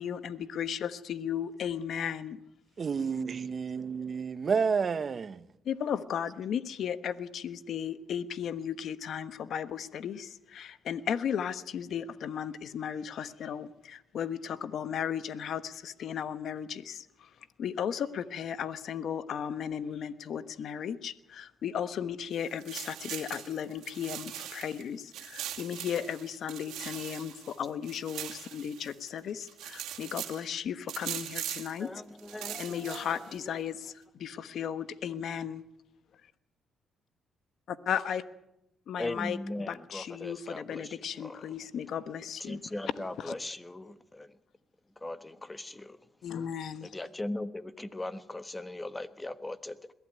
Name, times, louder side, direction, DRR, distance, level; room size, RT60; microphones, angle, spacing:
voice 1, 0.0-2.4 5.6-17.3 17.6-31.9 32.6-35.6 37.7-38.2 38.9-42.6 43.2-43.3 46.2-46.9, left 8 dB, 65° left, 1.2 m, -35 dB
voice 2, 2.8-5.4, right 5 dB, 45° right, 1.2 m, -30 dB
sound 1, 22.3-24.8 25.1-29.1 29.4-30.4 30.9-31.8 32.2-33.4, right 12 dB, 85° right, 2.4 m, -41 dB
voice 3, 31.8-33.6 39.0-41.5 42.4-44.4 45.0-46.0 46.8-49.9, left 1 dB, 15° left, 1.4 m, -39 dB
22.0 x 15.5 x 9.3 m
cardioid pair, 90°, 0 cm